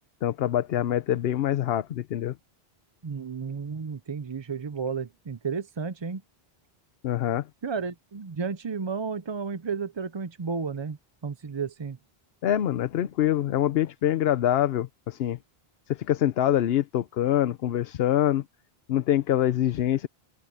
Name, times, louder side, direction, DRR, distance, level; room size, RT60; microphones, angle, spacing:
voice 1, 0.2-2.4 7.0-7.5 12.4-15.4 15.9-18.4 18.9-20.1, left 11 dB, 75° left, 0.9 m, -25 dB
voice 2, 3.0-6.2 7.6-11.0 11.2-12.0, right 5 dB, 35° right, 0.5 m, -32 dB
omnidirectional pair, 1.0 m